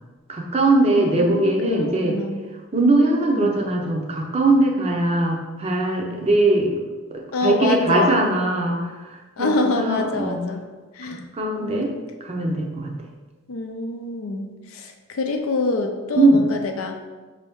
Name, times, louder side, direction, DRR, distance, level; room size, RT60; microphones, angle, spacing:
voice 1, 0.3-2.2 2.7-6.8 7.1-10.4 11.0-11.9 12.2-12.9 16.2-16.4, right 2 dB, 30° right, 0 dB, 0.5 m, -21 dB
voice 2, 0.9-2.4 3.3-3.6 7.3-8.2 9.4-10.6 10.9-11.2 11.6-12.0 13.5-17.1, left 2 dB, 75° left, 4 dB, 0.5 m, -26 dB
5.2 x 2.7 x 3.5 m, 1.3 s
head